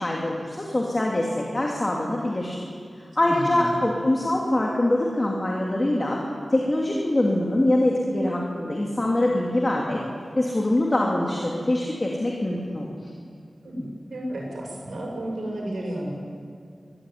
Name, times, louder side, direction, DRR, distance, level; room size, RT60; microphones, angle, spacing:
voice 1, 0.0-2.6 3.2-6.2 6.5-10.0 10.4-13.1, left 1 dB, 30° left, -2 dB, 2.8 m, -24 dB
voice 2, 3.2-3.7 13.6-16.1, right 1 dB, 90° right, -1 dB, 7.1 m, -32 dB
22.5 x 15.5 x 9.4 m, 2.3 s
wide cardioid pair, 100°, 0 cm